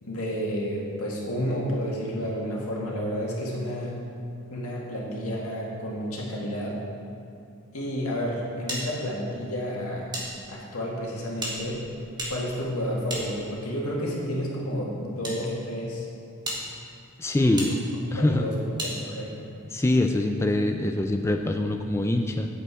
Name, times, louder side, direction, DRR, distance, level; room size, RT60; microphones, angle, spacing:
voice 1, 0.0-3.9 4.5-6.8 7.7-10.1 10.5-11.9 12.3-16.1 17.3-17.8 18.2-19.4, equal, 85° left, -3 dB, 2.0 m, -30 dB
sound 1, 8.7-10.3 10.5-10.6 11.4-13.8 14.6-15.4 15.9-16.0 16.4-16.6 17.6-17.7 18.8-18.9, right 1 dB, 20° right, 1.6 m, -35 dB
voice 2, 17.2-17.7 18.1-18.4 19.7-22.5, left 1 dB, 10° left, 4 dB, 0.3 m, -24 dB
8.5 x 7.9 x 4.7 m, 2.7 s
head